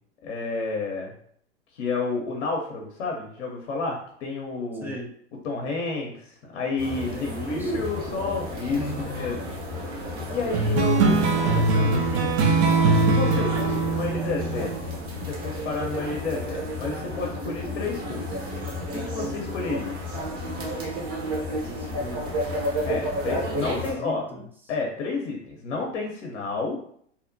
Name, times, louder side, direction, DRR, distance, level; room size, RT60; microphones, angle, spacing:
voice 1, 0.2-1.1 1.7-5.0 5.4-8.8 9.2-9.4 10.3-12.4 12.9-14.7 15.3-18.6 18.9-20.0 22.8-24.3 24.7-26.8, left 3 dB, 65° left, 0 dB, 0.7 m, -30 dB
sound 1, 6.8-23.9, equal, 40° right, 1.0 m, -32 dB
voice 2, 7.1-7.8 8.7-9.3 10.4-10.6 21.6-22.7 23.6-24.4, left 1 dB, 5° right, -2 dB, 0.5 m, -36 dB
sound 2, 10.5-15.5, right 3 dB, 60° right, 0.5 m, -22 dB
2.8 x 2.1 x 2.6 m, 0.63 s
hypercardioid pair, 100°, 36 cm